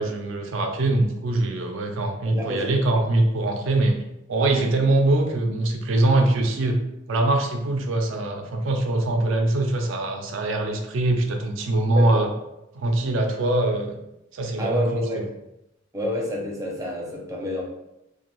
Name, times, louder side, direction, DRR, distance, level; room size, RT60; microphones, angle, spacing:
voice 1, 0.0-4.0 4.3-6.8 7.1-12.3 12.7-14.0 14.3-15.2, right 2 dB, 80° right, 4 dB, 0.4 m, -23 dB
voice 2, 2.2-2.8 11.9-12.3 14.6-15.2 15.9-17.6, equal, 15° right, -2 dB, 0.5 m, -28 dB
2.5 x 2.2 x 3.0 m, 0.89 s
head